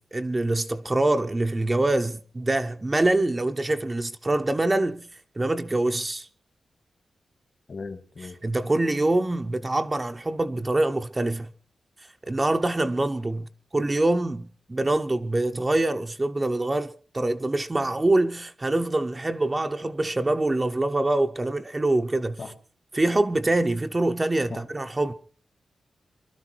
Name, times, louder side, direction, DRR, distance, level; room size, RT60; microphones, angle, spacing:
voice 1, 0.0-5.1 5.4-6.3 8.4-11.5 12.3-22.4 22.9-25.1, right 2 dB, 20° right, 0.7 m, -25 dB
voice 2, 7.7-8.4 22.4-22.5 24.5-24.6, left 4 dB, 45° left, 1.8 m, -37 dB
23.0 x 13.0 x 4.5 m
wide cardioid pair, 140°, 0 cm